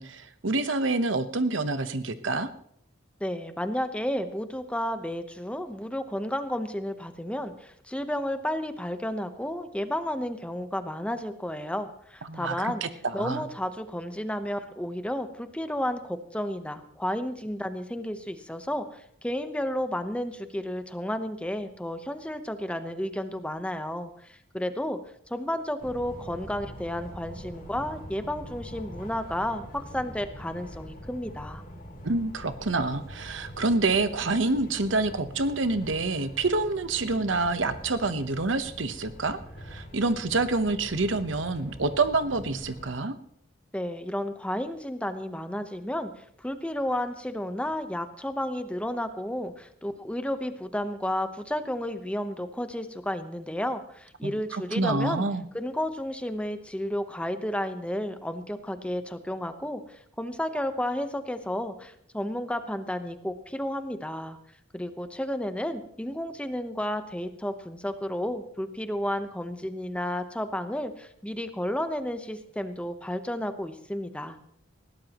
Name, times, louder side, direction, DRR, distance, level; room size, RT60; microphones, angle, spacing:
voice 1, 0.0-2.5 12.3-12.9 13.2-13.4 32.0-39.4 39.7-43.1 54.2-55.4, right 3 dB, 80° right, 11 dB, 1.0 m, -27 dB
voice 2, 3.2-12.8 13.1-25.0 25.3-31.6 43.7-46.1 46.4-55.2 55.5-64.4 64.7-74.4, left 1 dB, 5° left, 9 dB, 0.9 m, -32 dB
sound 1, 25.8-42.9, equal, 50° left, 3.4 m, -44 dB
20.0 x 17.0 x 3.0 m, 0.67 s
head